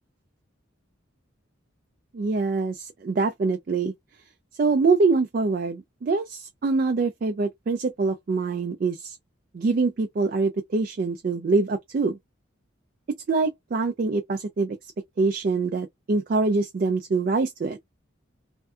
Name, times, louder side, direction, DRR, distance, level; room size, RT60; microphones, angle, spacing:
voice 1, 2.1-3.9 4.6-9.2 9.5-12.2 13.3-14.8 15.2-17.8, right 3 dB, 45° right, 0.3 m, -24 dB
2.5 x 2.3 x 2.3 m
head